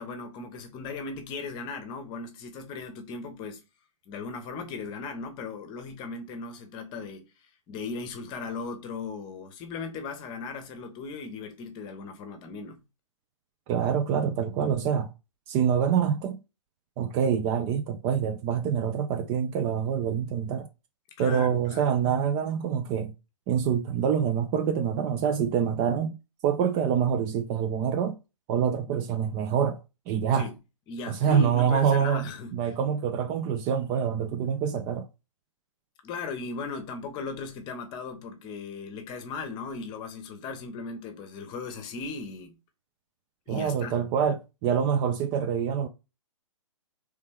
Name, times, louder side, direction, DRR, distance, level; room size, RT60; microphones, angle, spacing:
voice 1, 0.0-3.6 4.1-12.8 21.2-21.9 30.3-30.5 30.9-32.7 36.0-42.6 43.5-43.9, left 4 dB, 25° left, 1.0 m, -37 dB
voice 2, 13.7-15.1 15.5-16.4 17.0-20.7 21.2-23.1 23.5-26.2 26.4-28.2 28.5-29.8 30.1-30.5 31.1-35.1 43.5-45.9, right 8 dB, 25° right, 0.5 m, -26 dB
4.2 x 3.4 x 3.4 m
figure-of-eight pair, 120°, 17 cm